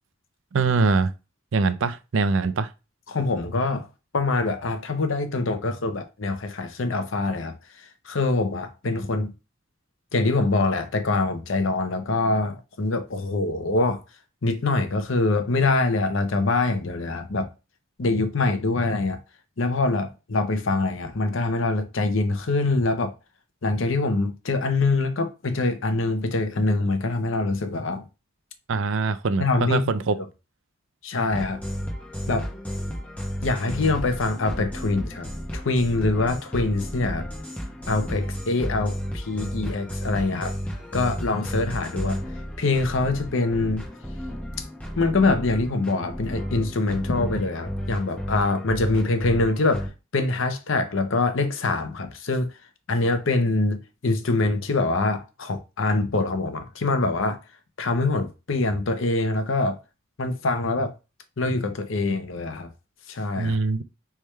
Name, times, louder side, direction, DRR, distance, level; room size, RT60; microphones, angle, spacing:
voice 1, 0.5-1.1 1.5-2.7 28.7-30.2 63.4-63.8, right 4 dB, 70° right, 0.5 m, -23 dB
voice 2, 3.1-3.9 4.1-7.5 8.1-9.3 10.1-14.0 14.4-17.5 18.0-19.2 19.6-23.1 23.6-28.0 29.4-29.8 31.0-31.6 32.3-32.5 33.4-37.3 37.9-40.5 40.9-42.2 42.6-43.9 45.0-49.9 50.1-52.5 52.9-57.4 57.8-59.8 60.2-60.9 61.4-62.7 63.1-63.6, left 3 dB, 75° left, 0.8 m, -24 dB
sound 1, 31.3-49.9, equal, 5° left, 1.1 m, -33 dB
3.5 x 3.2 x 4.4 m
head